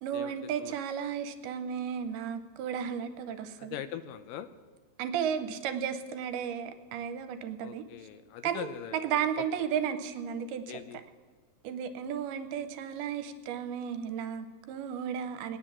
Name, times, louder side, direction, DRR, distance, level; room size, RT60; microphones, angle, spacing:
voice 1, 0.0-3.8 5.0-7.8 8.4-10.8 11.6-15.6, right 8 dB, 80° right, 9 dB, 2.6 m, -34 dB
voice 2, 3.6-4.5 7.6-9.0 9.4-9.5 10.7-11.0, left 10 dB, 80° left, 11 dB, 2.0 m, -41 dB
19.0 x 9.8 x 7.3 m, 1.5 s
omnidirectional pair, 4.6 m